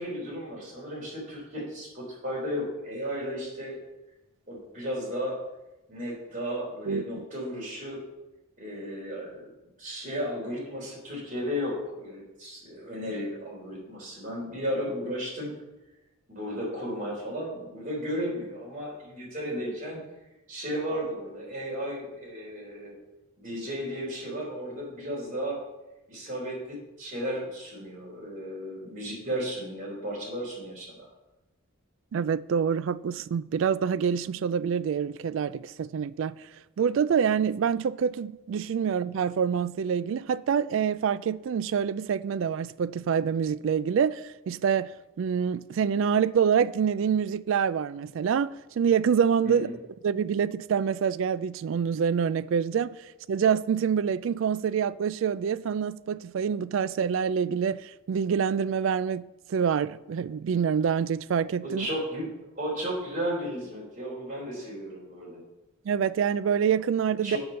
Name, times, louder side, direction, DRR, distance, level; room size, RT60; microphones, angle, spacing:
voice 1, 0.0-3.7 4.5-5.4 5.9-8.0 8.6-9.5 9.8-15.5 16.3-20.0 20.5-23.0 23.4-25.6 26.1-31.1 49.4-49.7 61.6-65.4 67.2-67.4, equal, 40° right, 3.6 m, -34 dB
voice 2, 32.1-36.3 36.8-44.9 45.2-49.7 50.0-53.0 53.3-61.9 65.9-67.4, right 7 dB, 65° right, 0.3 m, -26 dB
7.8 x 6.8 x 5.6 m
head